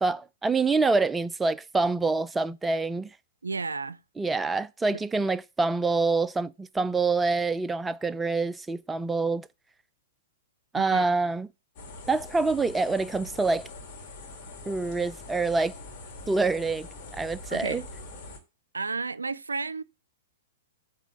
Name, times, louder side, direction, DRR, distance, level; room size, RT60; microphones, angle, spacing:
voice 1, 0.0-3.1 4.2-9.5 10.7-11.5 12.1-13.7 14.7-15.7 16.3-16.9 17.1-17.8, right 3 dB, 10° right, 0.4 m, -26 dB
voice 2, 3.4-4.0 4.9-5.0 10.7-11.1 17.5-17.8 18.7-19.8, right 4 dB, 80° right, 0.4 m, -32 dB
sound 1, 11.8-18.4, left 2 dB, 45° left, 2.9 m, -43 dB
8.2 x 4.1 x 7.0 m
figure-of-eight pair, 110°, 0 cm